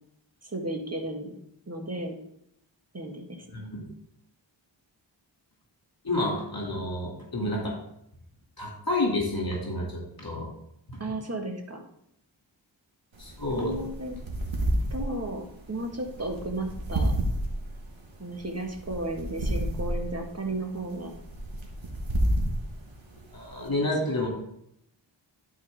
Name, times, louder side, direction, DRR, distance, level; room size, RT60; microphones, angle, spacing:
voice 1, 0.4-1.3 1.7-2.2 2.9-3.7 7.4-7.5 11.0-11.8 13.6-14.2 14.9-17.1 18.2-21.1 24.0-24.1, right 1 dB, 35° right, 2 dB, 1.7 m, -34 dB
voice 2, 3.5-3.9 6.0-7.7 8.6-10.5 10.9-11.0 13.2-13.8 23.3-24.3, left 1 dB, 50° left, -3 dB, 2.7 m, -29 dB
sound 1, 13.1-23.7, right 1 dB, 85° right, 1.6 m, -31 dB
12.0 x 4.6 x 3.6 m, 0.76 s
wide cardioid pair, 55°, 46 cm